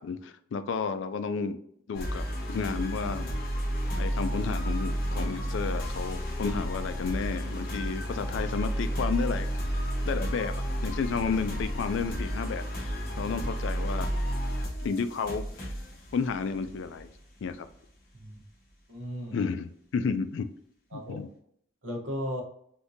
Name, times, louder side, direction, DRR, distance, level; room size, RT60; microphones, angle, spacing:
voice 1, 0.0-1.6 1.9-3.3 4.0-9.5 10.1-10.5 10.8-14.1 14.8-15.7 16.1-17.1 17.4-17.7 19.3-20.5 20.9-21.3, left 5 dB, 65° left, 10 dB, 0.3 m, -32 dB
sound 1, 1.9-17.7, equal, 45° left, 1.0 m, -32 dB
voice 2, 18.9-19.4 20.9-21.2 21.8-22.4, equal, 75° right, 0 dB, 1.0 m, -36 dB
3.6 x 2.7 x 2.6 m, 0.68 s
head